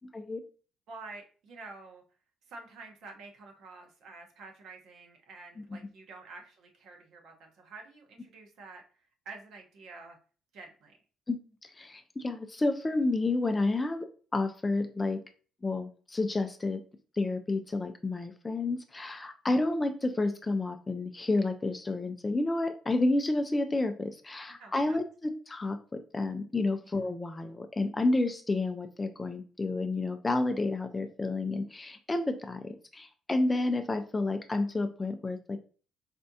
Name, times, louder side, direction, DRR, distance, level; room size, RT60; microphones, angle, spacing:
voice 1, 0.9-2.0 2.5-10.2 10.5-11.0 24.6-25.0, right 3 dB, 60° right, 3 dB, 1.0 m, -48 dB
voice 2, 11.3-14.1 14.3-15.2 15.6-16.8 17.2-35.6, left 2 dB, 15° left, 7 dB, 0.3 m, -30 dB
4.2 x 3.5 x 2.7 m, 0.39 s
cardioid pair, 160°, 0 cm